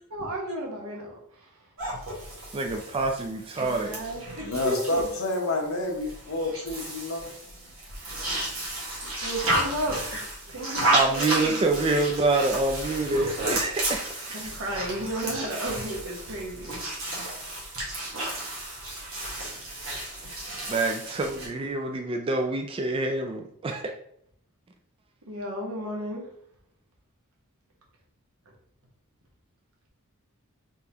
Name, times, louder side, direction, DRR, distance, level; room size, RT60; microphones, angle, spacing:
voice 1, 0.1-1.5 3.6-5.1 6.4-6.5 9.2-11.7 14.3-16.8 25.3-26.3, right 1 dB, 80° right, -2 dB, 1.2 m, -33 dB
sound 1, 1.8-21.5, right 1 dB, 65° right, 1.4 m, -32 dB
voice 2, 2.5-3.9 10.9-14.4 20.7-23.9, right 3 dB, 25° right, 4 dB, 0.3 m, -26 dB
voice 3, 4.4-7.2, left 2 dB, 65° left, 2 dB, 0.9 m, -29 dB
3.8 x 3.7 x 2.8 m, 0.68 s
head